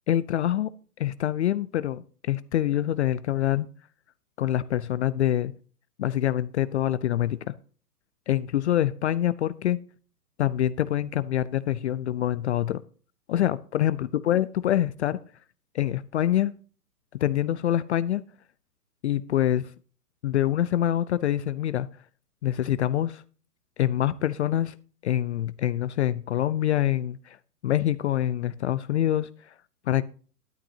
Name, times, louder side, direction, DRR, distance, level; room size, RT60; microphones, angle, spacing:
voice 1, 0.1-0.7 1.0-3.7 4.4-5.5 6.0-7.5 8.3-9.8 10.4-12.8 13.3-15.2 15.7-16.5 17.1-18.2 19.0-19.7 20.2-21.9 22.4-23.2 23.8-24.7 25.0-27.4 27.6-29.5 29.9-30.0, left 12 dB, 45° left, 0.5 m, -25 dB
12.0 x 11.0 x 2.8 m
hypercardioid pair, 125°, 47 cm